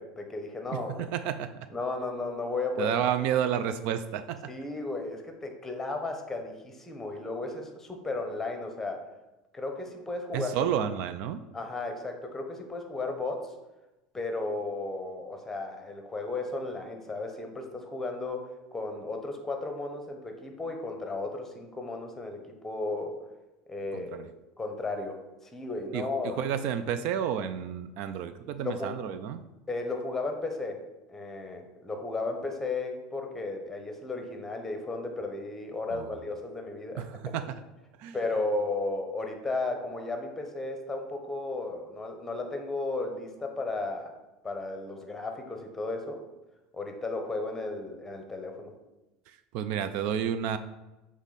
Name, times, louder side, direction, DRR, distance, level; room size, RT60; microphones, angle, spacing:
voice 1, 0.0-1.0 1.7-3.0 4.5-9.0 9.5-10.5 11.5-13.5 14.1-23.1 23.7-24.3 24.6-26.4 28.6-28.9 29.7-30.8 31.1-37.4 38.1-44.1 44.4-46.2 46.7-48.7, left 3 dB, 15° left, 4 dB, 1.0 m, -34 dB
voice 2, 1.0-1.6 2.8-4.5 10.3-11.4 23.9-24.3 25.9-29.4 35.9-36.1 37.0-37.5 38.0-38.2 49.3-50.6, right 9 dB, 65° right, 11 dB, 0.4 m, -31 dB
7.2 x 3.6 x 4.1 m, 1.0 s
supercardioid pair, 120°, 2 cm